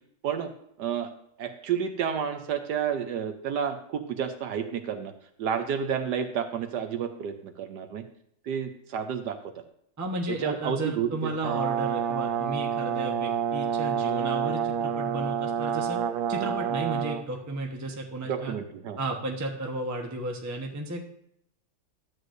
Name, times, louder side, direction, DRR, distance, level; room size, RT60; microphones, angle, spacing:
voice 1, 0.8-1.1 1.4-5.1 5.4-8.0 8.4-9.4 10.3-11.3 18.2-19.0, right 7 dB, 70° right, 7 dB, 1.2 m, -30 dB
voice 2, 10.0-16.0 16.3-18.5 19.0-21.0, right 2 dB, 15° right, 1 dB, 0.6 m, -33 dB
Brass instrument, 11.4-17.2, right 8 dB, 90° right, 1.4 m, -28 dB
12.0 x 8.0 x 2.6 m, 0.72 s
omnidirectional pair, 2.0 m